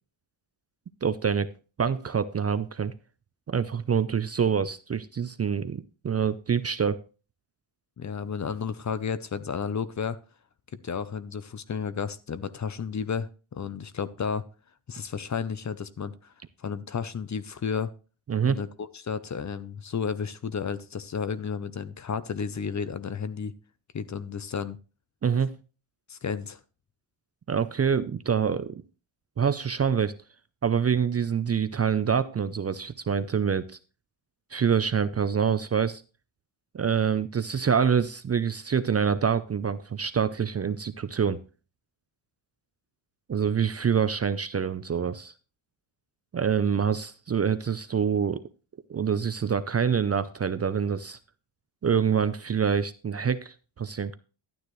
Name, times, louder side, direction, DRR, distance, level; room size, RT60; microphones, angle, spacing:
voice 1, 1.0-1.5 1.8-2.9 3.5-7.0 18.3-18.6 25.2-25.5 27.5-28.7 29.4-30.1 30.6-33.8 34.5-36.0 36.7-41.4 43.3-45.3 46.3-48.4 48.9-51.2 51.8-54.2, right 7 dB, 30° right, 0.5 m, -26 dB
voice 2, 8.0-10.2 10.8-14.4 14.9-16.3 16.6-17.9 18.5-23.5 23.9-24.8 26.1-26.6, left 6 dB, 35° left, 0.6 m, -32 dB
12.0 x 9.3 x 3.1 m
cardioid pair, 110°, 50 cm